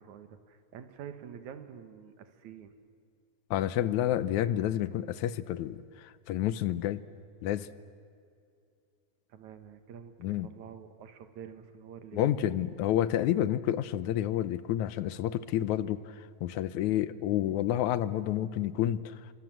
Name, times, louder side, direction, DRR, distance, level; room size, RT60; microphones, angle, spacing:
voice 1, 0.0-2.8 9.3-12.4, right 8 dB, 75° right, 9 dB, 2.8 m, -47 dB
voice 2, 3.5-7.0 7.4-7.7 10.2-10.5 12.1-19.2, left 12 dB, 80° left, 15 dB, 2.2 m, -29 dB
28.0 x 24.5 x 7.6 m, 2.5 s
omnidirectional pair, 3.4 m